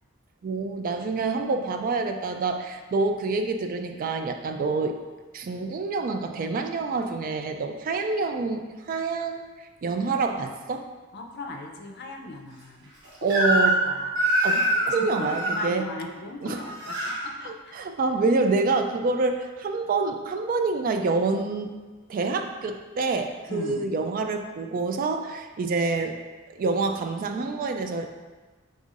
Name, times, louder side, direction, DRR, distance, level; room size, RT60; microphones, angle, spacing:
voice 1, 0.4-5.0 5.3-9.5 9.8-10.9 13.2-13.8 14.4-15.9 16.4-16.6 17.5-21.7 22.1-26.2 26.5-28.1, right 3 dB, 40° right, 6 dB, 0.3 m, -27 dB
voice 2, 11.1-12.9 13.2-14.2 14.9-17.7 23.5-23.9, left 2 dB, 55° left, 3 dB, 0.5 m, -38 dB
Crying sobbing / Screech, 13.3-13.9 14.1-15.6 16.5-17.2, right 1 dB, 60° right, 1.2 m, -24 dB
5.5 x 3.5 x 2.5 m, 1.3 s
head